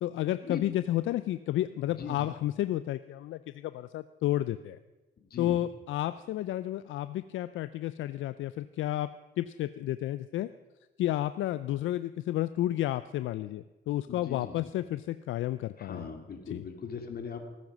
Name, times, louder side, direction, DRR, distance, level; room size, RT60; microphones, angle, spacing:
voice 1, 0.0-4.8 5.4-9.1 9.4-10.5 11.0-16.1 16.5-16.7, left 13 dB, 75° left, 14 dB, 0.5 m, -31 dB
voice 2, 14.1-14.7 15.8-17.4, left 6 dB, 50° left, 5 dB, 2.6 m, -39 dB
18.5 x 9.2 x 6.1 m, 1.1 s
cardioid pair, 90°, 20 cm